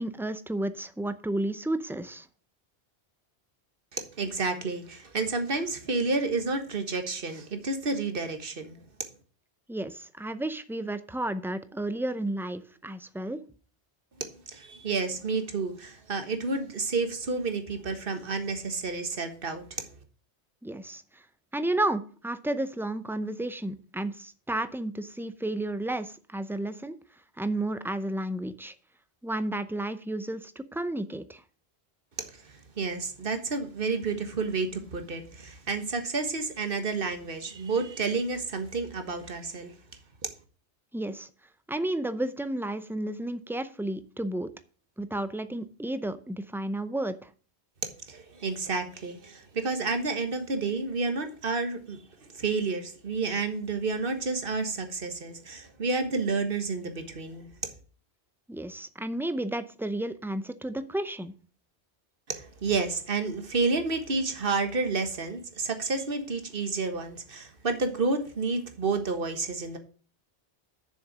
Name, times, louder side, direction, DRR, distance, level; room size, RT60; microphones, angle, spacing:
voice 1, 0.0-2.3 9.7-13.4 20.6-21.2 21.5-27.0 27.4-28.7 29.2-31.4 40.9-41.3 41.7-44.5 45.0-47.3 58.5-61.3, right 1 dB, 5° right, 0.4 m, -32 dB
voice 2, 3.9-8.8 14.2-19.8 32.2-39.7 40.2-40.3 48.1-57.7 62.3-69.8, right 3 dB, 55° right, 1.6 m, -30 dB
7.1 x 6.8 x 7.4 m
omnidirectional pair, 1.1 m